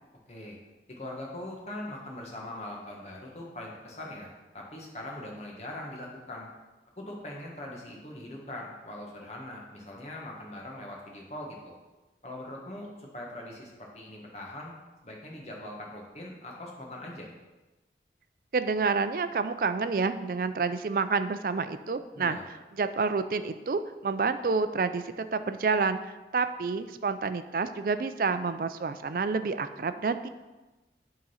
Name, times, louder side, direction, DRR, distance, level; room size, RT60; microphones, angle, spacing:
voice 1, 0.9-4.3 4.5-6.5 7.0-11.7 12.2-14.7 15.0-17.3 22.1-22.4, left 1 dB, 35° left, -1 dB, 1.4 m, -41 dB
voice 2, 18.5-22.4 22.8-25.0 25.3-30.3, right 4 dB, 50° right, 10 dB, 0.4 m, -29 dB
8.5 x 3.8 x 5.6 m, 1.1 s
head